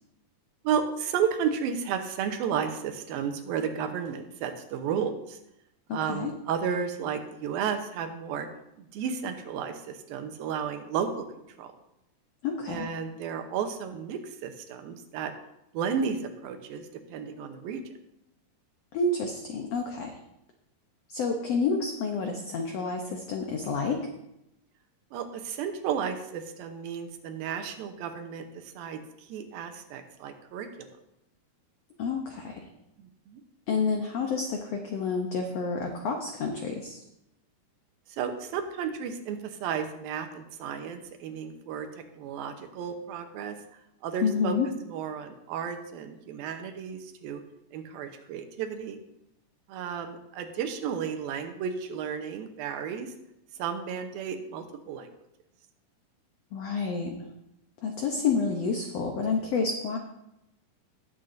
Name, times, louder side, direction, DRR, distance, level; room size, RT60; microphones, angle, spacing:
voice 1, 0.6-5.4 5.9-8.5 8.8-11.3 11.6-11.7 12.7-15.3 15.7-17.8 25.1-30.9 33.3-33.4 38.1-41.9 42.1-43.6 44.0-44.6 44.9-47.4 47.7-49.0 49.7-53.1 53.6-55.1, right 7 dB, 85° right, 7 dB, 2.7 m, -33 dB
voice 2, 5.9-6.3 12.4-12.9 18.9-20.1 21.1-24.0 32.0-32.6 33.7-37.0 44.2-44.7 56.5-57.3 57.8-60.0, left 4 dB, 85° left, 3 dB, 1.4 m, -29 dB
18.5 x 7.9 x 2.6 m, 0.84 s
omnidirectional pair, 4.1 m